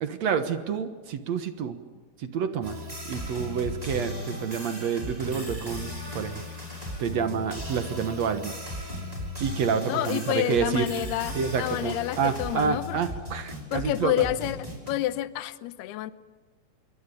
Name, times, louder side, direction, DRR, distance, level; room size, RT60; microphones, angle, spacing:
voice 1, 0.0-1.8 2.2-2.8 3.1-6.4 7.0-8.5 9.4-10.9 11.3-14.1, right 6 dB, 60° right, 9 dB, 1.9 m, -28 dB
sound 1, 2.6-14.9, left 1 dB, 10° right, 5.5 m, -36 dB
voice 2, 9.9-13.0 13.7-16.1, left 14 dB, 80° left, 14 dB, 2.8 m, -29 dB
26.5 x 23.0 x 7.0 m, 1.5 s
omnidirectional pair, 4.6 m